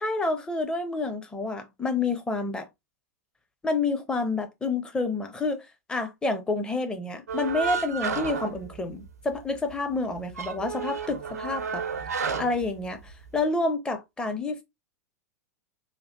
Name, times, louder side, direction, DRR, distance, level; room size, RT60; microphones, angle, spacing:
voice 1, 0.0-2.7 3.6-11.9 12.4-14.6, left 3 dB, 10° left, 0.6 m, -29 dB
sound 1, 7.3-9.4 9.7-9.8 10.2-13.4, right 6 dB, 70° right, 0.5 m, -32 dB
3.2 x 2.2 x 2.8 m
figure-of-eight pair, 95°, 9 cm